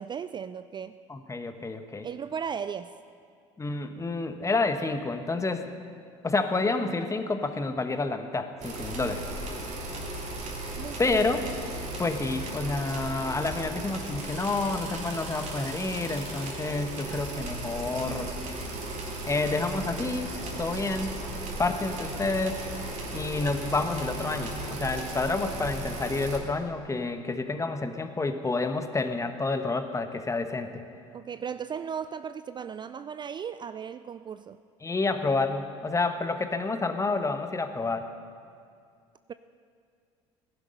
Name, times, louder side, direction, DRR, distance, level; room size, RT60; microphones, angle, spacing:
voice 1, 0.0-0.9 2.0-2.9 10.7-11.2 31.1-34.6, right 7 dB, 30° right, 13 dB, 0.4 m, -36 dB
voice 2, 1.1-2.1 3.6-5.7 6.2-9.2 11.0-11.4 12.0-18.3 19.3-21.1 21.6-22.6 23.1-30.8 34.8-38.1, left 3 dB, 20° left, 8 dB, 1.1 m, -29 dB
sound 1, 8.6-26.4, right 2 dB, 50° right, 3.0 m, -36 dB
Laughter / Drum, 19.2-25.2, left 2 dB, 80° left, 2.8 m, -46 dB
17.0 x 11.5 x 5.4 m, 2.3 s
hypercardioid pair, 70°, 15 cm